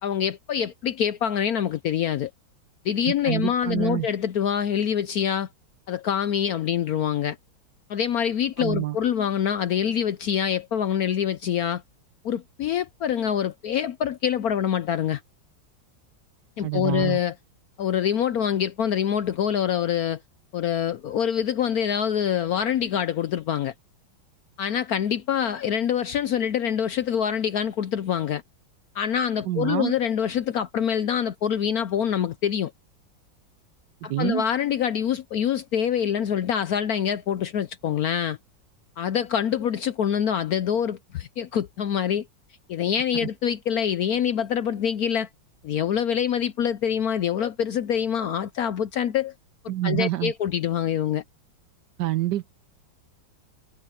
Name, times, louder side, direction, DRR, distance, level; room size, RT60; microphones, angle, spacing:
voice 1, 0.0-2.3 2.8-5.5 5.9-7.4 7.9-11.8 12.2-15.2 16.6-17.3 17.8-20.2 20.5-23.7 24.6-28.4 28.9-32.7 34.0-38.4 39.0-42.3 42.7-45.3 45.6-49.3 49.8-51.2, left 9 dB, 65° left, 0.9 m, -25 dB
voice 2, 3.1-4.1 8.6-9.0 16.6-17.2 29.5-29.9 34.1-34.4 43.1-43.3 49.7-50.3 52.0-52.5, right 15 dB, 70° right, 1.1 m, -27 dB
omnidirectional pair, 2.1 m